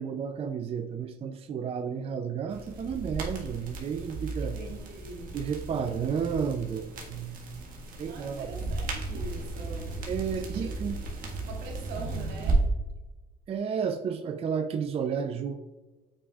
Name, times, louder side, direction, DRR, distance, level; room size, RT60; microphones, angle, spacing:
voice 1, 0.0-4.6 5.3-7.7 8.0-8.5 10.1-11.0 13.5-15.5, right 7 dB, 35° right, 0.4 m, -32 dB
sound 1, 2.5-12.6, right 3 dB, 55° right, 1.6 m, -35 dB
voice 2, 4.4-5.4 8.1-10.0 10.3-10.7 11.5-12.7, right 4 dB, 85° right, 1.6 m, -43 dB
8.6 x 4.9 x 2.4 m
cardioid pair, 110°, 17 cm